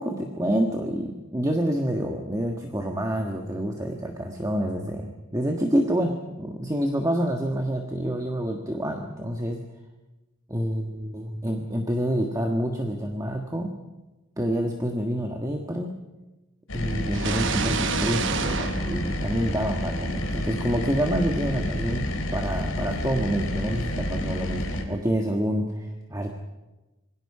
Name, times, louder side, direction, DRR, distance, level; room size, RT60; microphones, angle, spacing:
voice 1, 0.0-9.6 10.5-13.7 14.4-15.9 16.7-26.4, equal, 15° right, 3 dB, 1.6 m, -27 dB
sound 1, 16.7-24.8, left 1 dB, 70° left, 3.6 m, -29 dB
sound 2, 17.1-19.9, right 5 dB, 60° right, 1.0 m, -29 dB
27.0 x 22.5 x 5.0 m, 1.1 s
head